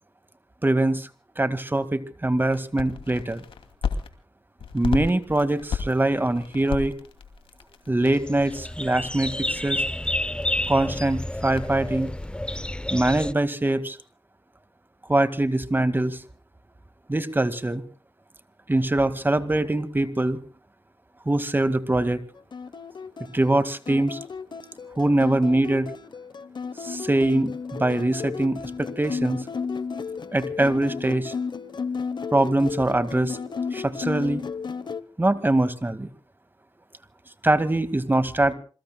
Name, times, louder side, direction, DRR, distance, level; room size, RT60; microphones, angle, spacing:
voice 1, 0.6-1.1 1.4-3.4 4.7-7.0 7.9-9.8 10.7-12.1 12.9-14.0 15.1-16.2 17.1-17.8 18.7-20.4 21.3-22.2 23.3-24.2 25.0-25.9 26.8-29.4 30.3-31.3 32.3-33.4 33.7-34.4 35.2-36.1 37.4-38.5, right 1 dB, 20° right, 12 dB, 2.1 m, -23 dB
sound 1, 2.5-4.1 4.6-12.7, left 6 dB, 85° left, 2.7 m, -35 dB
sound 2, 8.1-13.3, left 1 dB, 10° left, 0.9 m, -30 dB
sound 3, 22.5-35.0, left 5 dB, 55° left, 1.1 m, -33 dB
28.0 x 22.0 x 2.3 m, 0.37 s
cardioid pair, 55°, 9 cm